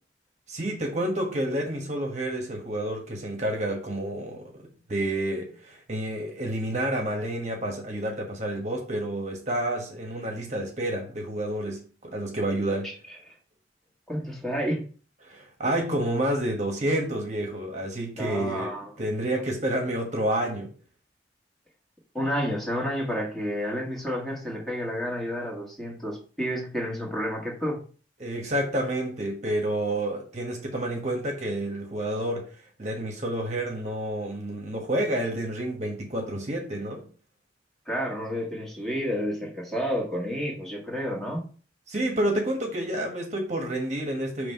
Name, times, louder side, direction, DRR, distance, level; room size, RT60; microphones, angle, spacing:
voice 1, 0.5-4.6 4.9-12.9 15.2-20.7 28.2-32.5 32.8-37.0 41.9-44.5, right 1 dB, 40° right, 1.2 m, -29 dB
voice 2, 14.1-14.8 18.1-18.9 22.1-27.8 37.9-41.5, equal, 5° left, 1.6 m, -30 dB
5.6 x 3.3 x 5.4 m
head